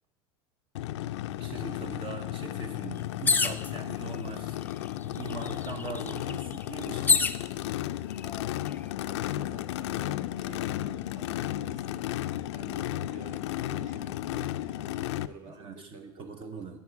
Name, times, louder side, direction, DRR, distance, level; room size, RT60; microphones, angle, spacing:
Race car auto racing / Idling / Accelerating revving vroom, 0.7-15.3, left 14 dB, 85° left, 0.4 m, -34 dB
voice 1, 1.4-4.6 5.2-7.3 15.4-16.8, right 5 dB, 35° right, 6 dB, 1.0 m, -41 dB
sound 1, 3.3-3.7 4.6-4.7 5.0-7.4 8.2-8.7, left 4 dB, 15° left, 0.5 m, -26 dB
voice 2, 7.9-8.3 9.0-12.1 12.5-16.8, right 3 dB, 55° right, 3 dB, 3.0 m, -50 dB
12.0 x 6.9 x 4.7 m, 0.78 s
supercardioid pair, 110°, 14 cm